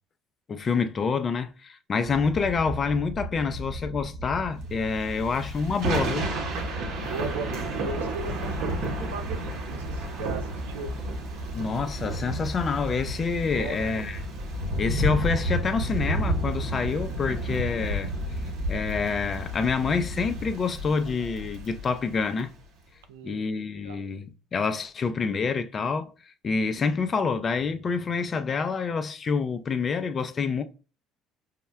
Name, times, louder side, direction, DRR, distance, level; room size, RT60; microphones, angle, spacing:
voice 1, 0.5-6.3 11.5-14.2 14.8-18.1 18.7-22.5 23.2-26.1 26.4-30.6, left 5 dB, 40° left, 0.4 m, -27 dB
sound 1, 2.0-20.5, equal, 85° left, 0.8 m, -36 dB
Thunder / Rain, 4.9-22.4, right 1 dB, 70° right, 0.9 m, -32 dB
voice 2, 6.9-10.9 13.5-14.0 23.1-24.0, right 4 dB, 90° right, 0.4 m, -38 dB
5.5 x 2.1 x 2.2 m
supercardioid pair, 75°, 0 cm